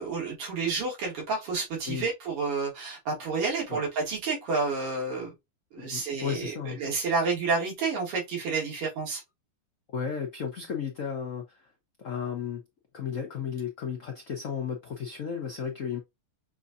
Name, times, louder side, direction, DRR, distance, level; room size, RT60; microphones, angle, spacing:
voice 1, 0.0-5.3 5.7-9.2, right 4 dB, 90° right, 2.5 m, -30 dB
voice 2, 5.9-6.8 9.9-11.7 12.0-12.6 12.9-16.0, left 7 dB, 70° left, 0.7 m, -34 dB
6.1 x 2.7 x 2.4 m
omnidirectional pair, 2.4 m